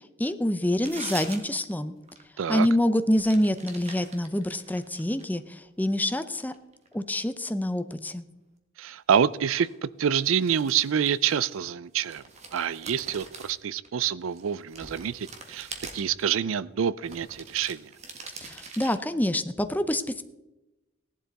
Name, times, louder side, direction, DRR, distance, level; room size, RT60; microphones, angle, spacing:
voice 1, 0.2-1.9 2.5-6.5 6.9-8.3 18.4-20.2, left 1 dB, 10° left, 0.6 m, -26 dB
sound 1, 0.8-1.7 2.0-2.2 2.5-2.7 3.2-5.4 5.9-6.9 9.6-9.8 10.1-11.7 12.0-13.9 14.4-16.2 17.0-19.0, right 4 dB, 35° right, 1.8 m, -43 dB
voice 2, 2.4-2.7 8.8-12.2 12.5-15.7 15.9-17.9, right 8 dB, 75° right, 0.4 m, -27 dB
17.5 x 11.5 x 4.1 m
head